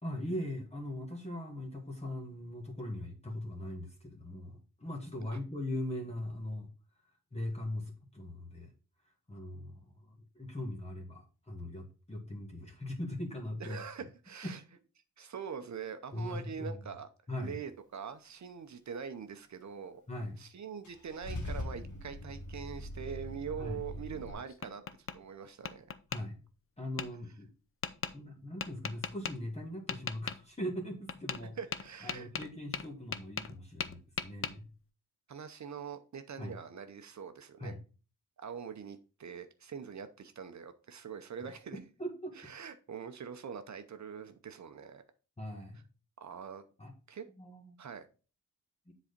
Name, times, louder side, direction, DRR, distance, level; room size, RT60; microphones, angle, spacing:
voice 1, 0.0-6.7 6.9-7.0 7.3-8.7 9.3-13.8 16.1-16.8 17.3-17.6 20.1-20.4 23.6-23.8 26.1-26.4 26.8-27.5 28.1-31.6 32.0-34.7 36.4-36.5 37.6-37.8 41.4-42.4 45.4-45.8 46.8-46.9 47.4-47.8 48.9-49.0, left 1 dB, 20° left, 0 dB, 1.5 m, -40 dB
voice 2, 13.6-14.6 15.2-17.1 17.4-20.0 20.4-25.9 31.6-32.3 35.3-37.7 38.4-41.8 42.4-45.0 46.2-46.6 47.1-47.2 47.8-48.1, right 7 dB, 55° right, 9 dB, 0.7 m, -43 dB
Car / Engine starting / Idling, 20.8-24.3, left 1 dB, 60° left, 1.6 m, -41 dB
Tap, 24.1-25.2 25.6-26.2 27.0-27.1 27.8-28.1 28.6-29.3 29.9-30.4 31.1-31.4 31.7-33.5 33.8-34.5, left 6 dB, 40° left, 0.6 m, -37 dB
7.5 x 4.1 x 5.1 m, 0.35 s
wide cardioid pair, 120°, 34 cm